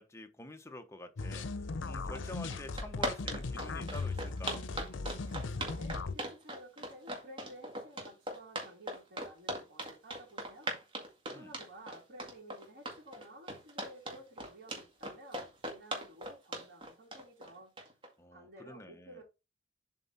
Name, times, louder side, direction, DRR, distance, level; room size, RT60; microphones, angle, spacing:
voice 1, 0.0-1.5 1.8-4.6 11.3-11.5 18.2-19.2, left 2 dB, 15° left, 0.9 m, -48 dB
sound 1, 1.2-6.2, left 3 dB, 85° left, 0.6 m, -38 dB
sound 2, 2.1-2.2 2.5-18.1, right 1 dB, 30° right, 2.0 m, -39 dB
voice 2, 5.2-10.8 11.3-17.7 18.3-19.2, right 1 dB, 65° right, 3.2 m, -53 dB
7.6 x 4.1 x 4.2 m
head